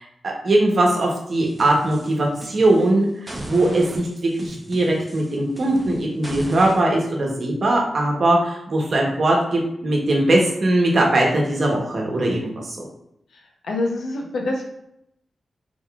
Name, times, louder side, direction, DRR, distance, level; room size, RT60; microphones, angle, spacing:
voice 1, 0.0-3.1 3.4-12.9, right 1 dB, 55° right, -1 dB, 1.1 m, -20 dB
sound 1, 1.4-2.9 3.3-6.8, right 1 dB, 20° right, 0.8 m, -35 dB
voice 2, 13.6-14.6, left 2 dB, 80° left, 1 dB, 0.8 m, -25 dB
3.9 x 3.5 x 2.4 m, 0.78 s
cardioid pair, 80°, 0 cm